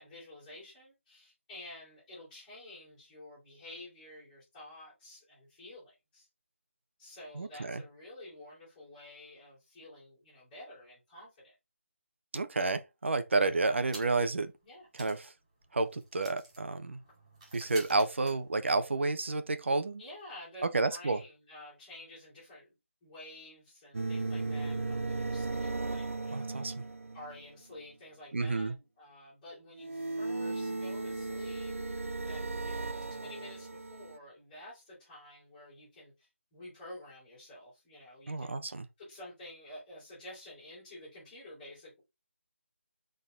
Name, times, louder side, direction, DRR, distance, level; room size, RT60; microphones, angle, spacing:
voice 1, 0.0-6.3 7.0-11.5 14.6-14.9 20.0-22.7 23.0-26.6 27.1-31.9 32.2-38.6 39.0-42.0, left 1 dB, 15° left, 3.9 m, -50 dB
voice 2, 7.4-7.8 12.3-14.5 15.0-15.3 15.7-17.0 17.5-20.0 20.7-21.2 26.3-26.7 28.3-28.7 38.3-38.8, right 3 dB, 60° right, 1.1 m, -30 dB
sound 1, 13.8-14.4 14.6-14.7 14.9-19.1, right 2 dB, 25° right, 3.9 m, -51 dB
sound 2, 23.9-27.4 29.8-34.2, right 3 dB, 80° right, 0.7 m, -36 dB
6.6 x 4.0 x 3.8 m
figure-of-eight pair, 170°, 7 cm